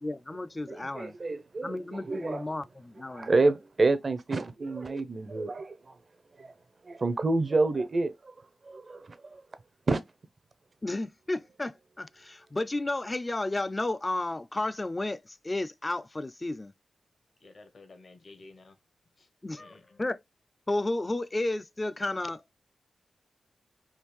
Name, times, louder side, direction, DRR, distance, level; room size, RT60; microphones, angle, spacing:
voice 1, 0.0-1.2 1.6-3.3 10.8-16.7 19.4-20.2 20.7-22.4, left 2 dB, 30° left, 0.3 m, -32 dB
voice 2, 0.7-2.4 3.1-6.0 6.4-6.5 6.8-8.3 8.6-9.4 9.9-10.0, right 3 dB, 55° right, 0.5 m, -28 dB
voice 3, 17.4-18.8 19.2-19.3 19.6-20.0, left 3 dB, 60° left, 0.8 m, -52 dB
3.5 x 2.4 x 3.0 m
cardioid pair, 45°, 0 cm